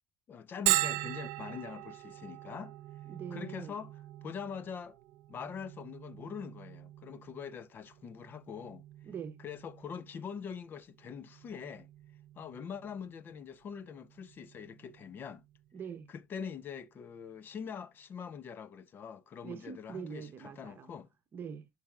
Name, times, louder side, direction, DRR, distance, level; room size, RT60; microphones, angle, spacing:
voice 1, 0.3-2.7 3.3-3.9 4.2-5.0 5.3-8.8 9.4-11.9 12.4-15.4 16.1-21.1, left 7 dB, 35° left, 0.5 m, -43 dB
Bell, 0.7-16.1, right 19 dB, 75° right, 0.5 m, -40 dB
voice 2, 3.1-3.8 9.0-9.4 15.7-16.1 19.4-21.0 21.3-21.7, right 7 dB, 35° right, 0.9 m, -43 dB
11.5 x 4.1 x 2.3 m
cardioid pair, 125°, 6 cm